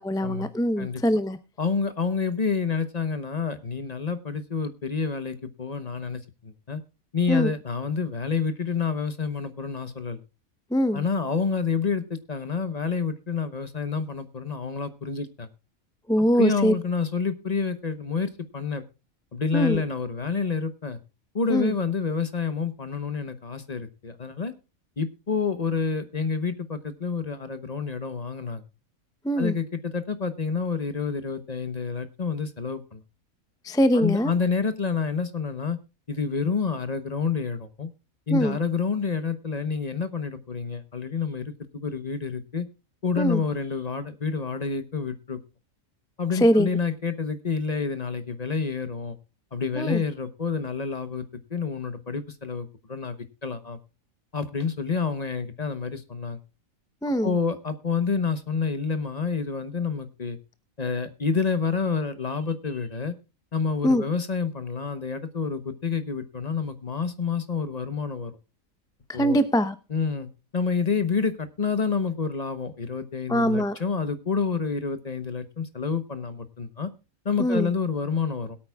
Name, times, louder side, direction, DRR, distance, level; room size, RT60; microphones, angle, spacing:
voice 1, 0.0-1.4 7.3-7.5 10.7-11.0 16.1-16.7 19.5-19.8 21.5-21.7 29.2-29.5 33.6-34.3 38.3-38.6 43.2-43.4 46.3-46.7 49.8-50.0 57.0-57.3 63.8-64.0 69.1-69.7 73.3-73.8 77.4-77.7, equal, 5° left, 11 dB, 0.4 m, -22 dB
voice 2, 1.6-6.8 7.1-10.2 10.9-15.5 16.4-18.8 19.3-21.0 21.3-24.5 25.0-28.6 29.4-33.0 33.9-35.8 36.1-37.9 38.3-42.7 43.0-45.4 46.2-49.2 49.5-51.2 51.5-53.2 53.4-53.8 54.3-56.4 57.2-60.4 60.8-63.2 63.5-68.4 69.1-69.4 69.9-76.9 77.2-78.6, left 5 dB, 35° left, 11 dB, 0.9 m, -28 dB
21.5 x 8.7 x 2.3 m, 0.29 s
omnidirectional pair, 1.4 m